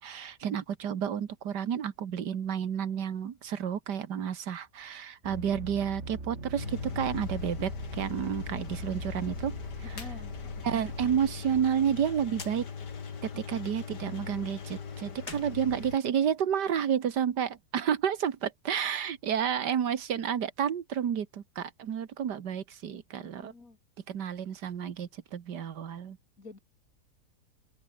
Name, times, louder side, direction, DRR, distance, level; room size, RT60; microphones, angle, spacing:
voice 1, 0.0-9.6 10.6-12.7 13.2-23.5 24.1-26.2, right 8 dB, 90° right, 2.0 m, -31 dB
sound 1, 5.2-12.4, right 3 dB, 45° right, 3.9 m, -43 dB
Engine, 6.6-16.0, left 6 dB, 90° left, 2.7 m, -40 dB
voice 2, 9.8-11.1 13.3-13.7 14.1-14.6 22.8-23.8 26.4-26.6, left 3 dB, 55° left, 4.0 m, -50 dB
sound 2, 9.9-10.2 10.5-10.6 12.3-12.6 15.1-16.4, left 4 dB, 70° left, 3.5 m, -45 dB
open air
omnidirectional pair, 1.7 m